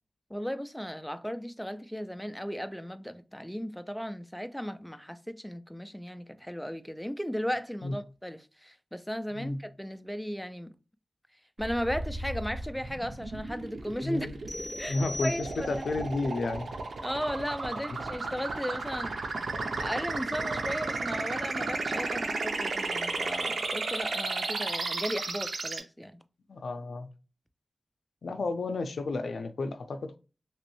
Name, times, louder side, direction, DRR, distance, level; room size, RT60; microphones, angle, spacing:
voice 1, 0.3-10.7 11.6-14.3 14.8-15.0 15.2-15.9 17.0-19.2 19.8-26.2, equal, ahead, 0.3 m, -36 dB
sound 1, 11.6-25.8, right 3 dB, 90° right, 0.6 m, -34 dB
voice 2, 14.0-14.3 14.9-16.7 26.5-27.1 28.2-30.2, left 3 dB, 90° left, 0.4 m, -32 dB
sound 2, 14.5-16.0, left 2 dB, 25° left, 1.2 m, -40 dB
3.0 x 3.0 x 3.0 m
wide cardioid pair, 110°, 0 cm